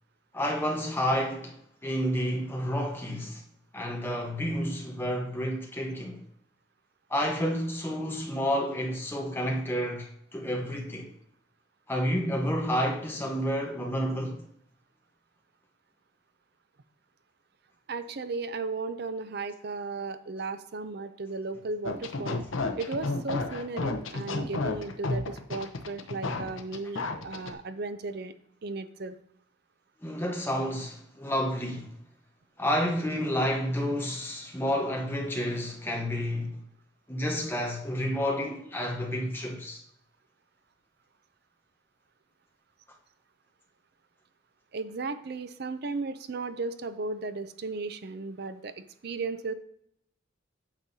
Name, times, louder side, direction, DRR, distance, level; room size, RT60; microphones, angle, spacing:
voice 1, 0.3-1.6 1.8-3.4 3.7-6.2 7.1-11.1 11.9-14.4 30.0-31.9 32.6-36.6 37.1-39.8, equal, 10° left, 1.1 m, -30 dB
voice 2, 17.9-22.4 22.8-28.3 28.6-29.2 44.7-49.5, right 3 dB, 50° right, 0.5 m, -35 dB
sound 1, 21.8-27.5, left 3 dB, 75° left, 0.8 m, -32 dB
8.8 x 6.4 x 2.8 m
head